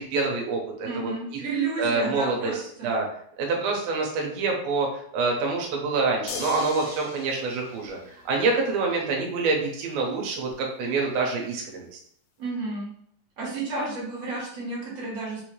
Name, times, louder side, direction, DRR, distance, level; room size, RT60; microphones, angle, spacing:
voice 1, 0.0-1.4 1.8-3.1 3.4-8.0 8.3-11.9, right 3 dB, 75° right, 0 dB, 2.5 m, -26 dB
voice 2, 0.9-2.9 12.4-12.9 13.4-15.4, right 3 dB, 50° right, -7 dB, 2.1 m, -31 dB
sound 1, 6.3-8.8 10.5-10.6, left 5 dB, 80° left, 2.2 m, -39 dB
6.0 x 2.7 x 3.1 m, 0.65 s
omnidirectional pair, 4.5 m